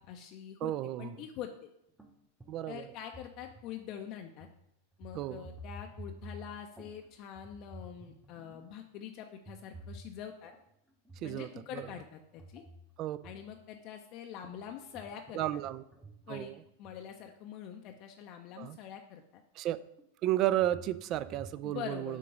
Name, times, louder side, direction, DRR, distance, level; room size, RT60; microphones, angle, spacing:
voice 1, 0.0-0.7 1.0-1.7 2.7-4.5 5.0-10.5 11.2-12.6 13.2-15.6 16.3-16.5 16.8-19.4 21.6-22.2, left 9 dB, 40° left, 4 dB, 0.5 m, -45 dB
voice 2, 0.6-1.2 2.5-2.9 5.1-5.5 11.2-11.9 13.0-13.2 15.3-15.8 16.3-16.6 18.6-18.8 19.6-19.8 20.2-22.2, right 13 dB, 35° right, 15 dB, 0.3 m, -33 dB
sound 1, 2.0-2.1 2.4-3.9 4.4-4.6 4.9-7.1 7.4-8.8 9.5-10.6 11.1-11.4 11.8-13.8 14.4-17.1 17.9-18.0 18.5-18.6 20.0-21.6, equal, 5° right, 0.7 m, -51 dB
6.5 x 3.8 x 5.1 m, 0.78 s
figure-of-eight pair, 90°, 0 cm